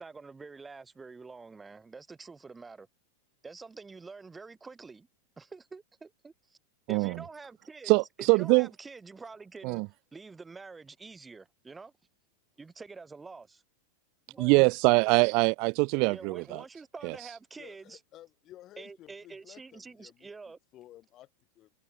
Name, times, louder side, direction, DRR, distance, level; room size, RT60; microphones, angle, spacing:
voice 1, 0.0-2.9 3.4-5.1 5.4-6.6 6.9-7.9 8.3-9.8 10.1-11.9 12.6-13.6 14.3-14.7 16.0-18.0 18.8-20.6, right 4 dB, 10° right, 1.6 m, -47 dB
voice 2, 7.9-8.7 9.6-9.9 14.4-16.6 17.0-17.2, right 32 dB, 45° right, 0.4 m, -23 dB
voice 3, 17.6-20.3 20.7-21.7, left 14 dB, 35° left, 7.4 m, -53 dB
figure-of-eight pair, 90°, 0 cm